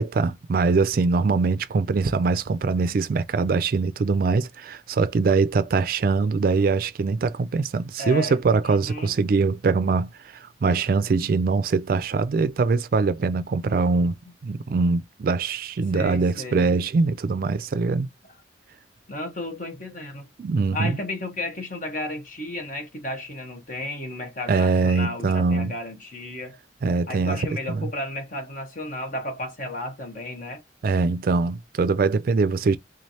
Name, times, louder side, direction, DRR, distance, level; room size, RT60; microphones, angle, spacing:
voice 1, 0.0-14.2 14.4-18.1 20.4-21.0 24.5-25.7 26.8-27.4 27.7-27.9 30.8-32.8, right 4 dB, 50° right, 0.3 m, -23 dB
voice 2, 8.0-9.2 15.9-16.7 19.1-20.3 20.7-26.6 27.1-30.6, left 1 dB, 45° left, 1.1 m, -33 dB
3.7 x 3.2 x 2.7 m
head